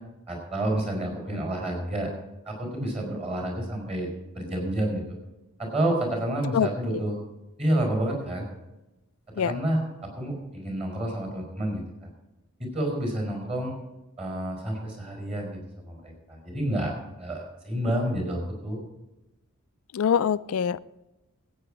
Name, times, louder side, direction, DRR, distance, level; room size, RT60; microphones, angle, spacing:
voice 1, 0.3-2.1 2.5-4.1 4.3-5.0 5.6-7.2 7.6-8.5 9.4-11.8 12.6-13.7 14.2-18.8, right 1 dB, 30° right, 1 dB, 4.5 m, -29 dB
voice 2, 19.9-20.8, left 8 dB, 85° left, 15 dB, 0.4 m, -23 dB
16.0 x 8.7 x 5.0 m, 0.98 s
head